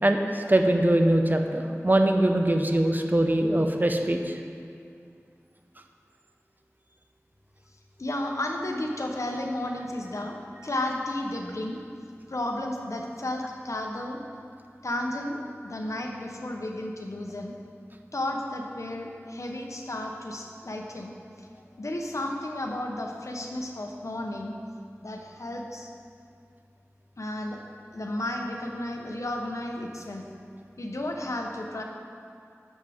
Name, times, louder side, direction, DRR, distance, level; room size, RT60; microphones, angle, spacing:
voice 1, 0.0-4.4, right 1 dB, 35° right, 4 dB, 0.7 m, -22 dB
voice 2, 8.0-11.8 12.3-14.2 14.8-17.5 18.1-21.1 21.8-24.5 25.0-25.9 27.2-27.6 27.9-30.3 30.8-31.8, left 1 dB, 75° left, 2 dB, 0.9 m, -33 dB
11.0 x 7.3 x 3.5 m, 2.3 s
wide cardioid pair, 45°, 5 cm